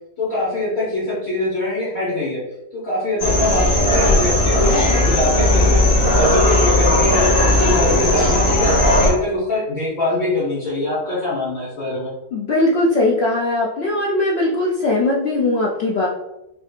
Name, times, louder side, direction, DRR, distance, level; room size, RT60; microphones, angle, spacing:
voice 1, 0.2-2.4 2.7-12.1, left 2 dB, 60° left, -10 dB, 1.8 m, -23 dB
sound 1, 3.2-9.1, left 1 dB, 35° left, 1.5 m, -16 dB
voice 2, 12.3-16.1, left 2 dB, 80° left, -3 dB, 0.5 m, -19 dB
5.8 x 2.7 x 2.4 m, 0.90 s
omnidirectional pair, 1.7 m